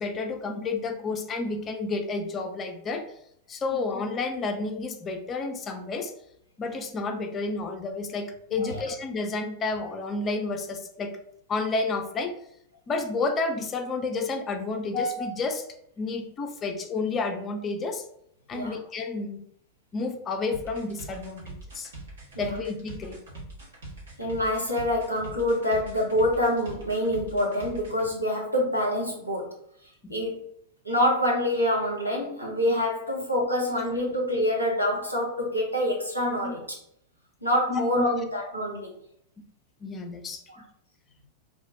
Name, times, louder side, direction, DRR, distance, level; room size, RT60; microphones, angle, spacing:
voice 1, 0.0-3.1 3.5-6.1 6.6-11.2 11.5-12.3 12.9-15.6 16.0-18.0 18.5-19.4 19.9-21.9 22.4-23.2 30.0-30.1 36.4-36.5 37.7-38.1 39.8-40.4, left 3 dB, 25° left, 5 dB, 0.4 m, -30 dB
sound 1, 20.5-28.1, right 2 dB, 65° right, 1.0 m, -42 dB
voice 2, 24.2-29.5 30.1-30.4 30.8-36.6 37.4-39.0 40.5-40.6, left 1 dB, 90° right, -2 dB, 0.8 m, -26 dB
2.7 x 2.1 x 3.4 m, 0.71 s
figure-of-eight pair, 90°, 0 cm